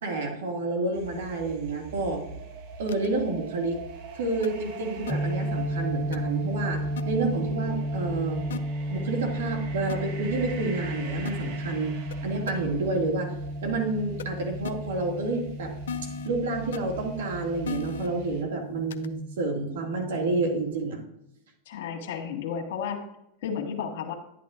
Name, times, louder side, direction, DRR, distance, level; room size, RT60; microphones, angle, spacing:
voice 1, 0.0-2.2 2.8-3.8 4.1-8.5 8.9-11.9 12.2-13.3 13.6-15.7 16.3-21.0, right 3 dB, 80° right, 2 dB, 2.1 m, -29 dB
sound 1, 0.9-18.4, right 4 dB, 60° right, 1.3 m, -42 dB
sound 2, 2.9-3.1 4.4-4.5 5.1-5.2 6.1-6.2 7.0-7.1 8.5-8.6 9.9-10.0 11.2-11.3 12.1-12.2 12.5-12.6 14.2-14.3 14.6-14.7 15.9-16.3 16.7-16.8 17.6-18.1 18.9-19.1, left 8 dB, 85° left, 0.5 m, -34 dB
sound 3, 5.1-20.7, equal, 5° left, 0.5 m, -34 dB
voice 2, 21.6-23.0 23.4-24.1, left 7 dB, 70° left, 2 dB, 1.6 m, -32 dB
11.0 x 8.5 x 2.5 m, 0.80 s
hypercardioid pair, 110°, 0 cm